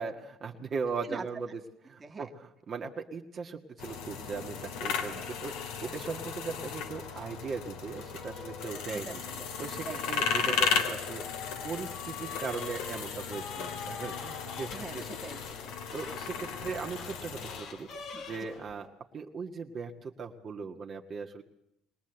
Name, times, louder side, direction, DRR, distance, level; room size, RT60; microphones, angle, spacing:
voice 1, 0.0-1.5 1.9-2.3 2.7-9.2 9.6-11.3 11.6-15.0 15.9-17.9 18.3-18.9 19.1-21.4, right 4 dB, 45° right, 1 dB, 1.7 m, -38 dB
voice 2, 2.0-2.3 5.1-5.2 5.8-6.0 8.9-9.5 9.8-10.0 14.7-16.8 18.1-18.4, right 4 dB, 25° right, 2 dB, 2.0 m, -45 dB
sound 1, 3.8-17.6, left 6 dB, 75° left, 2.7 m, -35 dB
sound 2, 6.9-7.5 8.0-18.9, left 5 dB, 60° left, 2.7 m, -46 dB
21.5 x 19.0 x 7.9 m, 0.80 s
supercardioid pair, 75°, 0 cm